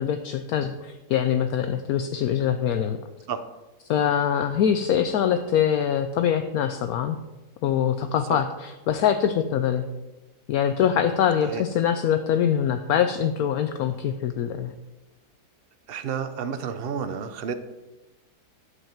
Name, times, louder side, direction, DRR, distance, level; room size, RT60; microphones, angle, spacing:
voice 1, 0.0-3.0 3.9-7.2 7.6-9.8 10.5-14.7, left 9 dB, 70° left, 8 dB, 1.0 m, -24 dB
voice 2, 15.9-17.5, right 7 dB, 60° right, 10 dB, 0.6 m, -30 dB
11.0 x 8.0 x 4.4 m, 1.1 s
omnidirectional pair, 1.8 m